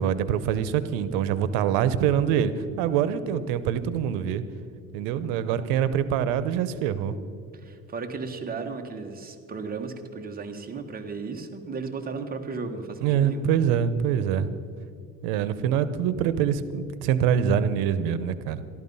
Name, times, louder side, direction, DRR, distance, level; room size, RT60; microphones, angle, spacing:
voice 1, 0.0-2.5 2.8-4.4 4.9-7.1 13.0-14.5 15.2-18.6, right 9 dB, 90° right, 14 dB, 0.9 m, -24 dB
voice 2, 7.6-13.4, right 4 dB, 25° right, 5 dB, 1.4 m, -35 dB
13.5 x 12.5 x 5.5 m, 2.3 s
cardioid pair, 115°, 33 cm